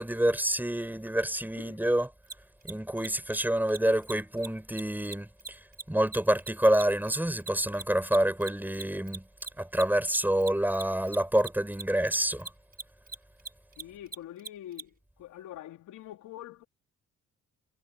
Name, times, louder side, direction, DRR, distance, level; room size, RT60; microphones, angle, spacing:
voice 1, 0.0-2.1 2.6-9.3 9.6-12.5, right 1 dB, 5° right, 7.0 m, -27 dB
Mechanisms, 2.2-2.3 2.6-2.7 3.0-3.1 3.3-3.4 3.7-3.8 4.0-4.1 4.4-4.5 4.8-7.5 7.7-14.8, right 5 dB, 30° right, 5.6 m, -40 dB
voice 2, 13.8-16.6, left 12 dB, 85° left, 3.4 m, -45 dB
cardioid pair, 90°, 30 cm